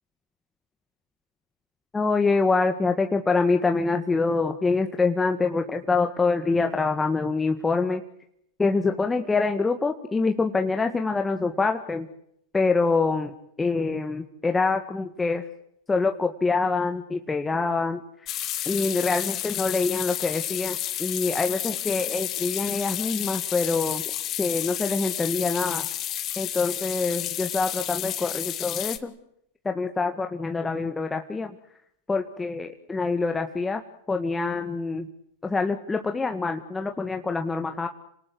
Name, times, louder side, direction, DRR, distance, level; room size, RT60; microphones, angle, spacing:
voice 1, 1.9-8.0 8.6-12.1 12.5-15.5 15.9-18.3 18.7-24.0 24.4-25.9 26.4-29.1 29.6-31.8 32.1-33.8 34.1-35.1 35.4-37.9, left 4 dB, 15° left, 5 dB, 1.9 m, -25 dB
sound 1, 18.3-29.0, left 12 dB, 40° left, 2.0 m, -31 dB
28.0 x 19.0 x 7.9 m, 0.73 s
hypercardioid pair, 110°, 0 cm